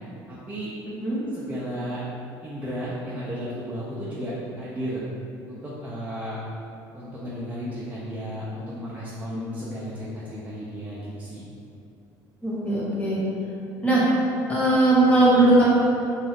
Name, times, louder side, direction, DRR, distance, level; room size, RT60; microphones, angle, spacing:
voice 1, 0.3-0.7 1.3-2.0 2.4-5.0 5.5-6.4 6.9-11.5, equal, 20° right, -8 dB, 0.5 m, -34 dB
voice 2, 9.3-9.7 12.4-13.2 13.8-14.0 14.5-15.7, right 2 dB, 15° left, -8 dB, 1.0 m, -19 dB
2.5 x 2.3 x 3.4 m, 2.7 s
supercardioid pair, 95°, 9 cm